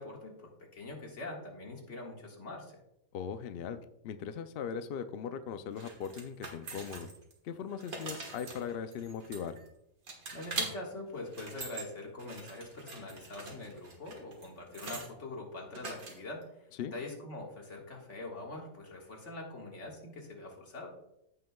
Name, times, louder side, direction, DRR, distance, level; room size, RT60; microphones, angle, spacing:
voice 1, 0.0-2.8 10.3-20.9, left 2 dB, 55° left, -1 dB, 2.0 m, -44 dB
voice 2, 3.1-7.1 7.4-9.6 16.8-17.0, left 7 dB, 70° left, 10 dB, 0.5 m, -39 dB
sound 1, 5.8-7.3 7.7-9.7 10.1-10.7 11.2-11.8 12.2-15.1 15.7-16.4, right 3 dB, 75° right, 2.1 m, -43 dB
14.5 x 5.7 x 2.3 m, 0.81 s
omnidirectional pair, 1.5 m